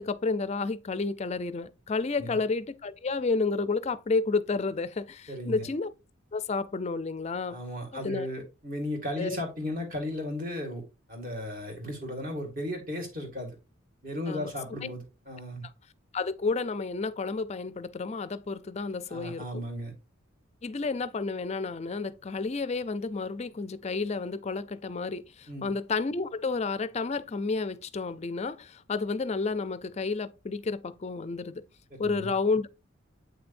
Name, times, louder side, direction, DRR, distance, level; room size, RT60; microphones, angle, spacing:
voice 1, 0.0-5.9 6.3-7.6 7.9-8.3 9.2-9.4 14.3-14.5 16.1-19.6 20.6-31.6 32.0-32.7, left 4 dB, 30° left, 0.4 m, -31 dB
voice 2, 5.3-5.7 7.5-10.8 11.1-13.6 14.0-15.7 19.1-19.9 25.5-25.7 32.0-32.3, left 1 dB, 40° right, 2.0 m, -35 dB
8.2 x 6.0 x 2.5 m
head